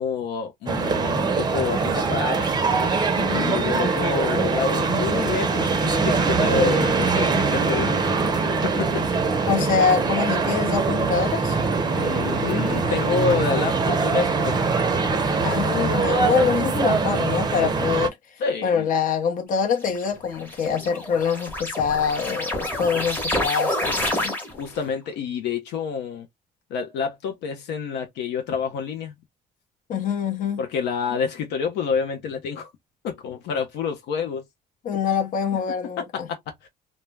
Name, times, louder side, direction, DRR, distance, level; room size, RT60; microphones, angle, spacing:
voice 1, 0.0-2.5 3.3-8.0 8.8-9.0 11.9-14.6 18.4-18.9 24.5-26.3 26.7-29.1 30.6-32.7 33.0-34.5 36.1-36.7, left 6 dB, 80° left, 0.6 m, -28 dB
sound 1, 0.7-18.1, right 4 dB, 25° right, 0.5 m, -22 dB
voice 2, 3.2-3.5 9.5-11.6 15.4-18.1 18.6-24.4 29.9-30.6 34.8-36.0, left 6 dB, 55° left, 0.8 m, -24 dB
sound 2, 19.8-24.8, left 1 dB, 10° left, 1.0 m, -28 dB
2.2 x 2.0 x 3.1 m
cardioid pair, 110°, 17 cm